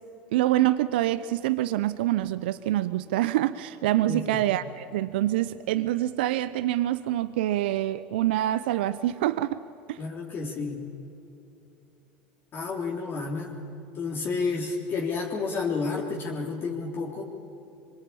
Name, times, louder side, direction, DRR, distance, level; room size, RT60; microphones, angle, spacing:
voice 1, 0.3-9.6 9.9-10.0, right 14 dB, 75° right, 0.7 m, -26 dB
voice 2, 4.1-4.4 10.0-10.8 12.5-13.6 14.0-17.2, left 4 dB, 40° left, 3.6 m, -30 dB
24.5 x 24.0 x 8.9 m
hypercardioid pair, 80°, 6 cm